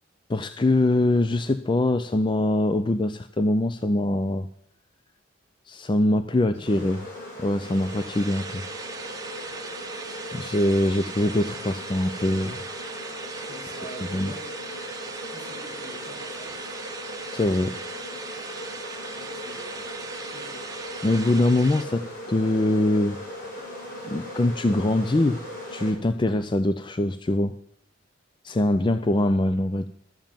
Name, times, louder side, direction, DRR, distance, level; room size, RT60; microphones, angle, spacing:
voice 1, 0.3-4.5 5.7-7.0 7.4-8.6 10.3-12.6 14.1-14.3 17.3-17.8 21.0-23.2 24.0-25.4 25.7-27.6 28.4-29.9, left 1 dB, 25° left, 11 dB, 0.4 m, -23 dB
voice 2, 6.3-6.8 13.4-14.5 15.1-16.5 19.0-19.7 20.2-20.7 28.7-29.0, equal, 75° left, -3 dB, 6.6 m, -45 dB
sound 1, 6.6-25.9, left 1 dB, 45° left, 6.4 m, -39 dB
sound 2, 7.6-21.8, right 4 dB, 20° right, 1.0 m, -39 dB
13.0 x 7.2 x 7.3 m, 0.68 s
head